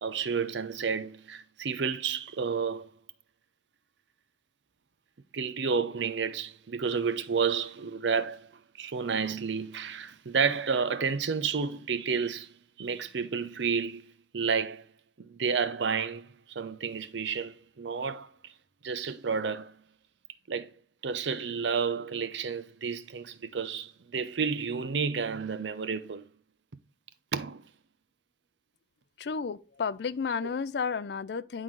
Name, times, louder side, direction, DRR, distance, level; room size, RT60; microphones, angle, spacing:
voice 1, 0.0-2.9 5.3-8.5 8.8-14.9 15.2-18.5 18.8-19.7 20.5-20.7 21.0-26.3 27.3-27.6, right 5 dB, 85° right, 0.6 m, -31 dB
voice 2, 29.2-31.6, left 5 dB, 65° left, 0.4 m, -32 dB
10.5 x 3.8 x 3.1 m
head